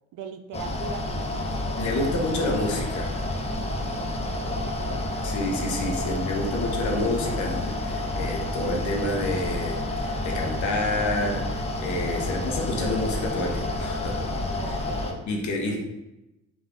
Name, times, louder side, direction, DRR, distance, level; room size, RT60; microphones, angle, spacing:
voice 1, 0.1-1.9 4.0-5.2 6.0-6.7 12.2-12.4 14.6-15.3 15.7-15.8, right 6 dB, 80° right, 8 dB, 0.5 m, -42 dB
Mechanical fan, 0.5-15.1, left 1 dB, 20° left, 0.5 m, -29 dB
voice 2, 1.8-3.2 5.2-14.3 15.3-15.8, left 1 dB, 70° left, 1 dB, 0.9 m, -29 dB
3.5 x 2.6 x 3.7 m, 0.95 s
cardioid pair, 90°, 30 cm